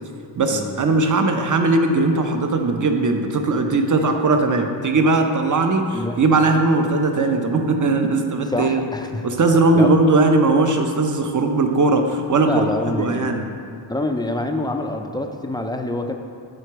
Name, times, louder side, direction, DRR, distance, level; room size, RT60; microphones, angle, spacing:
voice 1, 0.4-8.8 9.2-12.6 12.9-13.5, right 3 dB, 40° right, 5 dB, 0.6 m, -19 dB
voice 2, 8.5-9.3 9.7-9.9 12.4-13.4 13.9-16.1, left 2 dB, 10° left, 4 dB, 0.3 m, -26 dB
7.8 x 3.8 x 4.6 m, 2.4 s
wide cardioid pair, 95°, 47 cm